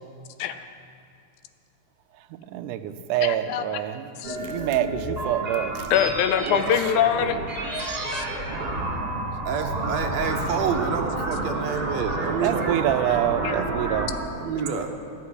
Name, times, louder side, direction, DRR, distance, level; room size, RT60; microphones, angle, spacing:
voice 1, 2.3-5.9 6.4-6.6 8.7-8.8 12.4-14.2, right 12 dB, 85° right, 10 dB, 2.1 m, -27 dB
voice 2, 3.2-3.6 4.2-4.4 5.9-7.4 8.1-8.3, left 9 dB, 80° left, 10 dB, 2.0 m, -23 dB
sound 1, 4.2-14.2, right 2 dB, 20° right, 2.1 m, -30 dB
voice 3, 9.4-12.7 14.4-14.9, right 6 dB, 70° right, 4 dB, 1.8 m, -28 dB
13.0 x 6.6 x 9.8 m, 2.4 s
omnidirectional pair, 3.5 m